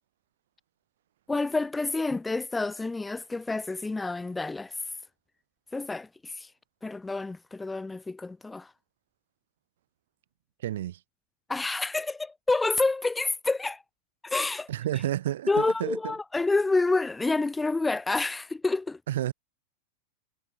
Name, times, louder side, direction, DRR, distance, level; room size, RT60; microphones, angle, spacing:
voice 1, 1.3-4.7 5.7-6.5 6.8-8.7 11.5-13.8 14.2-14.7 15.5-19.0, left 3 dB, 10° left, 1.0 m, -28 dB
voice 2, 10.6-11.0 14.7-16.1 19.1-19.3, right 12 dB, 80° right, 3.2 m, -30 dB
supercardioid pair, 140°, 0 cm